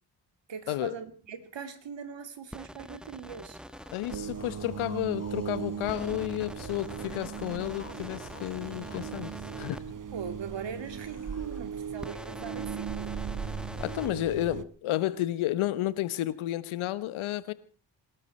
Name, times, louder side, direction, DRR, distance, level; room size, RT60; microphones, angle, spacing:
voice 1, 0.5-3.6 10.1-13.1, right 7 dB, 60° right, 2.8 m, -41 dB
sound 1, 2.5-4.2 5.9-9.8 12.0-14.1, equal, ahead, 1.3 m, -44 dB
sound 2, 3.6-6.1 6.5-9.2 10.7-11.6, left 4 dB, 30° left, 2.4 m, -53 dB
voice 2, 3.9-9.8 13.8-17.5, left 15 dB, 80° left, 1.2 m, -31 dB
sound 3, 4.1-14.6, right 7 dB, 40° right, 1.3 m, -38 dB
25.5 x 13.0 x 4.4 m
hypercardioid pair, 40°, 48 cm